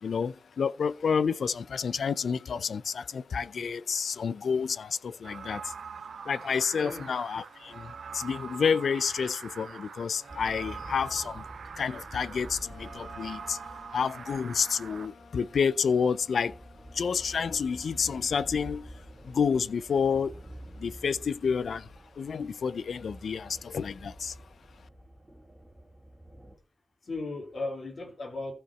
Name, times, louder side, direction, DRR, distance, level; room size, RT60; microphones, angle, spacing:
voice 1, 0.0-5.7 6.2-11.5 11.8-16.6 16.9-18.9 19.2-20.4 20.8-24.4, left 6 dB, 85° left, 0.5 m, -29 dB
sound 1, 5.2-15.1, right 6 dB, 90° right, 0.4 m, -44 dB
voice 2, 6.7-7.1 27.0-28.5, left 2 dB, 45° left, 3.4 m, -36 dB
sound 2, 10.3-26.6, right 1 dB, 5° right, 2.5 m, -48 dB
Wind instrument woodwind instrument, 12.6-20.0, left 3 dB, 65° left, 2.0 m, -55 dB
15.0 x 5.0 x 4.3 m
wide cardioid pair, 145°, 0 cm